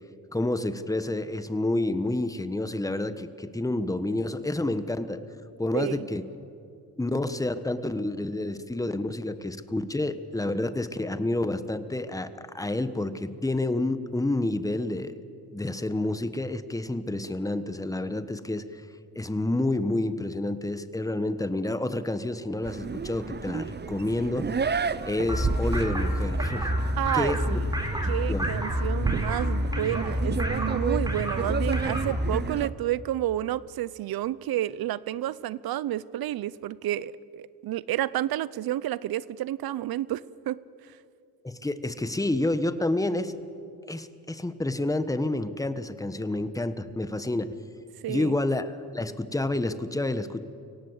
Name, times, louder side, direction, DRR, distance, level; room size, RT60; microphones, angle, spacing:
voice 1, 0.3-5.2 5.6-6.2 7.0-15.1 15.5-18.8 19.1-24.5 25.0-26.7 27.1-27.6 28.3-28.5 41.4-43.3 43.9-47.5 48.1-50.4, left 2 dB, 10° left, 11 dB, 1.2 m, -29 dB
voice 2, 5.7-6.1 27.0-27.7 28.1-40.6 48.0-48.4, right 13 dB, 75° right, 20 dB, 0.7 m, -30 dB
sound 1, 22.6-32.7, right 5 dB, 30° right, 0.7 m, -32 dB
sound 2, 25.3-32.4, equal, 10° right, 4.1 m, -28 dB
24.5 x 17.5 x 8.1 m, 2.5 s
cardioid pair, 70°, 36 cm